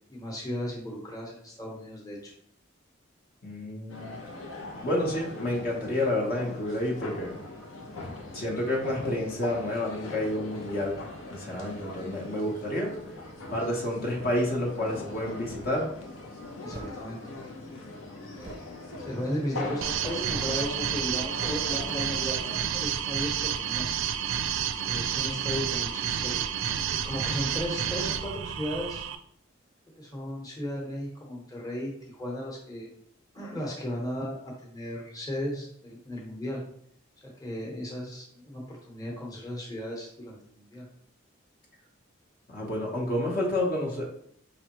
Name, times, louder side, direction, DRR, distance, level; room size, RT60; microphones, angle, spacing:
voice 1, 0.1-2.3 16.6-17.2 19.0-23.9 24.8-26.4 27.0-29.0 30.0-32.9 33.3-36.6 37.4-40.8, equal, 20° left, -2 dB, 1.0 m, -35 dB
voice 2, 3.4-4.2 4.8-7.4 8.3-11.0 11.3-12.9 13.5-15.9 42.5-44.0, left 1 dB, 45° left, -2 dB, 0.9 m, -29 dB
sound 1, 3.9-22.7, left 2 dB, 90° left, 0.8 m, -41 dB
sound 2, 16.7-17.0 18.3-19.9 20.3-20.6 20.9-21.0 21.4-22.9, right 1 dB, 20° right, 0.5 m, -45 dB
sound 3, 19.8-29.1, right 9 dB, 75° right, 0.4 m, -30 dB
5.2 x 3.3 x 3.0 m, 0.67 s
head